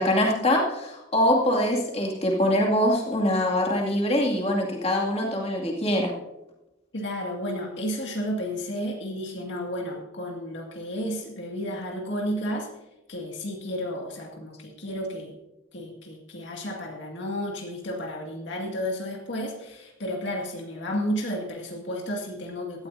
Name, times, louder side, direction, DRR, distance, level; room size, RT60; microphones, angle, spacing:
voice 1, 0.0-6.1, left 1 dB, 30° left, -1 dB, 2.4 m, -23 dB
voice 2, 6.9-12.7 13.1-15.3 15.7-22.9, equal, 70° left, 0 dB, 2.1 m, -32 dB
17.5 x 13.5 x 2.7 m, 0.96 s
head